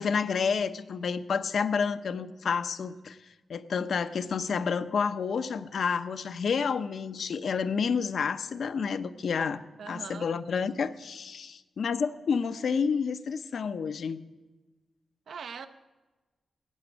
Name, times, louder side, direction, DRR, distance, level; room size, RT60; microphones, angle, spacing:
voice 1, 0.0-3.2 3.5-9.6 9.9-14.2, left 6 dB, 70° left, 11 dB, 0.6 m, -29 dB
voice 2, 9.8-10.3 15.3-15.7, right 6 dB, 75° right, 10 dB, 0.8 m, -41 dB
14.0 x 6.1 x 8.9 m, 1.2 s
cardioid pair, 85°, 0 cm